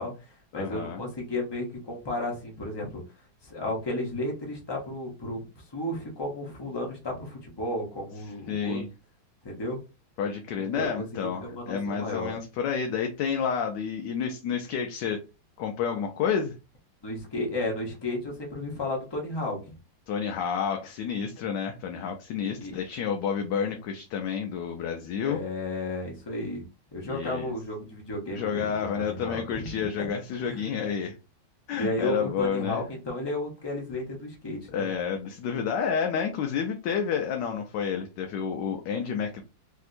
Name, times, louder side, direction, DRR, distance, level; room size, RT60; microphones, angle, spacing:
voice 1, 0.0-3.0 3.4-8.8 9.4-9.8 10.6-11.1 11.4-12.3 17.0-19.8 22.6-22.7 25.2-26.6 26.9-30.1 30.4-30.6 31.7-34.9, left 1 dB, 45° left, -1 dB, 0.3 m, -33 dB
voice 2, 0.6-1.0 8.5-8.9 10.2-15.2 15.6-16.5 20.1-25.4 27.0-27.5 28.3-31.1 31.7-32.8 34.7-39.4, left 7 dB, 75° left, 3 dB, 1.1 m, -30 dB
3.4 x 2.8 x 2.5 m, 0.29 s
omnidirectional pair, 2.1 m